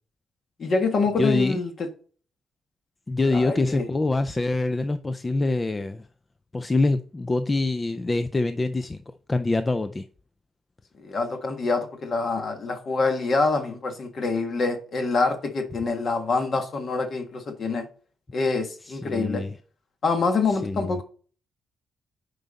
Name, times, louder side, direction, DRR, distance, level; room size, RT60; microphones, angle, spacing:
voice 1, 0.6-1.9 3.3-3.9 11.0-17.9 18.3-19.4 20.0-21.0, left 3 dB, 40° left, 1.5 m, -26 dB
voice 2, 1.2-1.6 3.1-6.1 6.5-9.0 9.3-10.1 18.8-19.6 20.5-21.0, left 2 dB, 15° left, 0.4 m, -25 dB
9.2 x 5.2 x 4.1 m
cardioid pair, 160°, 0 cm